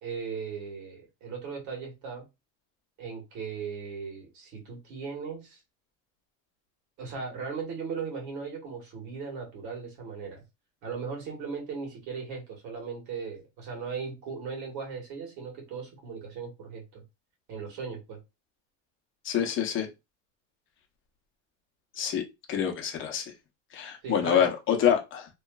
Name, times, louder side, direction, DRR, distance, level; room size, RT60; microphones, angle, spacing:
voice 1, 0.0-2.3 3.0-5.6 7.0-10.4 10.8-17.0 17.5-18.2 24.0-24.5, right 5 dB, 55° right, 1.6 m, -37 dB
voice 2, 19.2-19.9 22.0-22.2 22.5-23.2 23.7-25.3, left 9 dB, 35° left, 0.7 m, -26 dB
3.0 x 2.4 x 2.3 m
cardioid pair, 155°, 35 cm